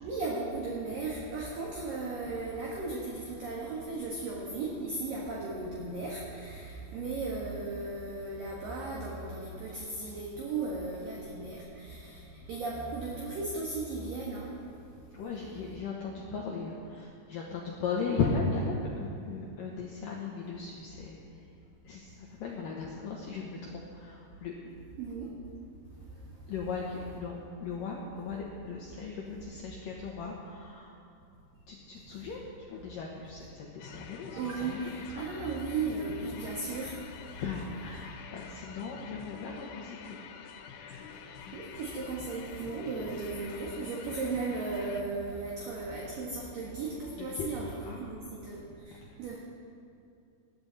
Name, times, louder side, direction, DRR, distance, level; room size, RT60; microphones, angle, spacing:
voice 1, 0.0-12.1 12.5-14.5 25.0-25.3 34.3-36.9 41.5-48.6 48.9-49.4, right 3 dB, 60° right, -4 dB, 2.8 m, -36 dB
voice 2, 15.1-21.2 21.8-24.7 26.5-30.9 31.7-32.4 32.7-35.0 37.4-40.2 40.8-41.1 41.4-41.5 47.2-47.5 47.8-48.1, left 4 dB, 70° left, -2 dB, 2.2 m, -37 dB
sound 1, 33.8-45.0, left 7 dB, 85° left, 3.3 m, -48 dB
19.5 x 13.0 x 4.1 m, 2.5 s
omnidirectional pair, 5.3 m